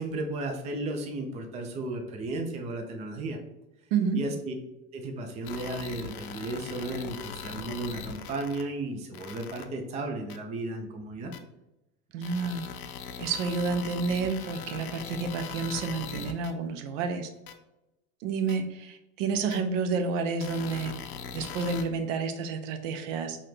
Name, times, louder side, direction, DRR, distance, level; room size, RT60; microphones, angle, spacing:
voice 1, 0.0-3.4 4.1-4.5 4.9-11.3, right 2 dB, 15° right, 4 dB, 0.4 m, -34 dB
voice 2, 3.9-4.2 12.1-12.7 13.2-17.3 18.2-20.9 21.3-23.4, right 4 dB, 60° right, 8 dB, 0.7 m, -30 dB
sound 1, 5.5-8.6 9.1-9.6 10.3-10.4 11.3-11.4 12.2-16.5 17.5-17.6 18.5-18.6 19.5-19.6 20.4-21.8, left 7 dB, 80° left, 0.6 m, -40 dB
4.0 x 2.4 x 3.2 m, 0.93 s
hypercardioid pair, 90°, 43 cm